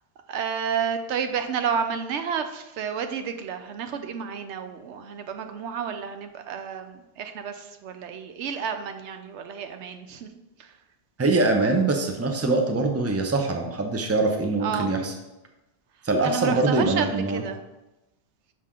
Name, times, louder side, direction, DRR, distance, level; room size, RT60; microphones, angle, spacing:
voice 1, 0.3-10.3 10.6-10.7 14.6-14.9 16.2-17.6, right 7 dB, 90° right, 7 dB, 0.9 m, -30 dB
voice 2, 11.2-15.1 16.0-17.4, right 2 dB, 15° right, 4 dB, 0.6 m, -23 dB
6.3 x 5.7 x 3.7 m, 1.0 s
omnidirectional pair, 1.1 m